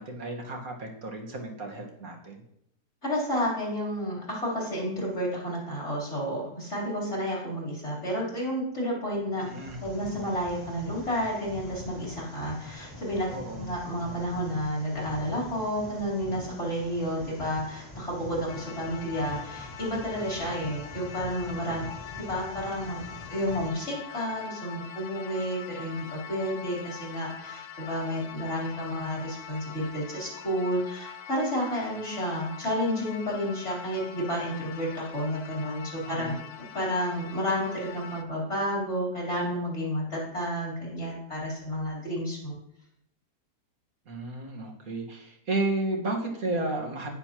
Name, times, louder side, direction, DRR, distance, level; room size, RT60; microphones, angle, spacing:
voice 1, 0.0-2.4 9.4-9.8 13.3-13.7 36.1-36.4 44.1-47.1, right 2 dB, 55° right, 1 dB, 2.0 m, -32 dB
voice 2, 3.0-9.5 9.8-23.0 23.3-36.3 36.7-42.6, equal, 40° left, -5 dB, 4.2 m, -31 dB
sound 1, 9.4-23.7, left 1 dB, 20° left, 2.6 m, -45 dB
sound 2, 18.5-38.2, left 8 dB, 60° left, 0.8 m, -44 dB
18.5 x 6.9 x 3.0 m, 0.76 s
omnidirectional pair, 1.8 m